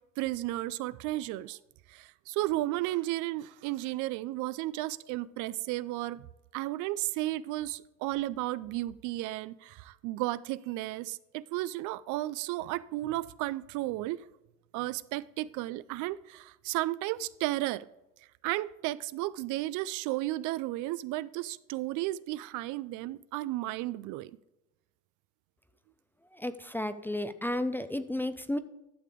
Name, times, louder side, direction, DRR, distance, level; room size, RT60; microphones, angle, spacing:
voice 1, 0.2-1.6 1.9-6.3 6.5-14.2 14.7-17.9 18.4-24.3, right 17 dB, 70° right, 0.4 m, -33 dB
voice 2, 26.3-28.6, left 1 dB, 5° left, 0.4 m, -33 dB
11.5 x 6.7 x 3.6 m
cardioid pair, 115°, 32 cm